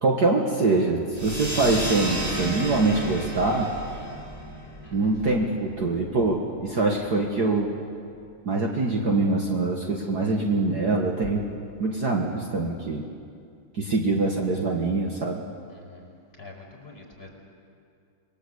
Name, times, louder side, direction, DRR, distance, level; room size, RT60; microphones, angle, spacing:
voice 1, 0.0-3.7 4.9-7.7 8.5-11.5 11.8-13.1 13.7-15.4, right 3 dB, 50° right, 0 dB, 2.1 m, -24 dB
sound 1, 1.1-6.2, right 1 dB, 15° right, 4.7 m, -32 dB
voice 2, 4.8-5.2 11.2-11.3 15.7-17.3, left 3 dB, 25° left, 0 dB, 5.1 m, -45 dB
27.5 x 20.5 x 8.1 m, 2.4 s
omnidirectional pair, 2.4 m